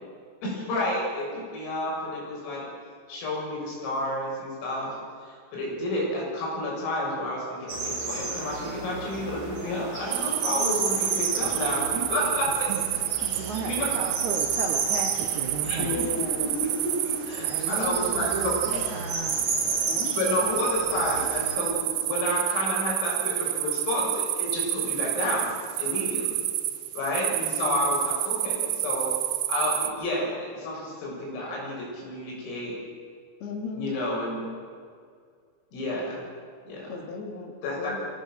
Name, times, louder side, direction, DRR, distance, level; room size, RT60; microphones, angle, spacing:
voice 1, 0.4-2.7 3.1-12.7 13.5-13.9 15.6-15.8 16.2-16.3 16.6-18.5 20.2-25.5 25.8-26.4 26.9-29.1 29.5-32.8 33.8-34.5 35.7-36.2 36.7-37.0 37.6-38.0, left 1 dB, 75° left, -4 dB, 9.7 m, -30 dB
sound 1, 7.7-21.6, right 3 dB, 40° right, 4.8 m, -34 dB
sound 2, 10.1-29.9, right 13 dB, 90° right, 3.8 m, -29 dB
voice 2, 11.7-12.1 12.7-12.8 13.3-15.9 17.4-19.9, right 5 dB, 70° right, 2 dB, 1.8 m, -35 dB
voice 3, 15.8-16.5 19.9-20.9 27.3-27.8 33.4-34.0 36.9-38.0, left 4 dB, 55° left, 2 dB, 4.3 m, -36 dB
23.5 x 17.0 x 7.8 m, 2.1 s
omnidirectional pair, 5.9 m